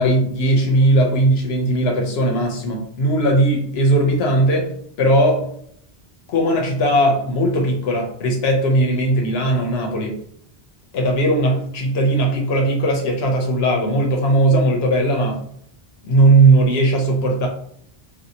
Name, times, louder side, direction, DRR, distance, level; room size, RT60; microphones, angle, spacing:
voice 1, 0.0-4.7 5.0-5.5 6.3-10.1 10.9-15.4 16.0-17.5, right 1 dB, 85° left, 2 dB, 0.9 m, -18 dB
2.6 x 2.3 x 2.7 m, 0.65 s
omnidirectional pair, 1.0 m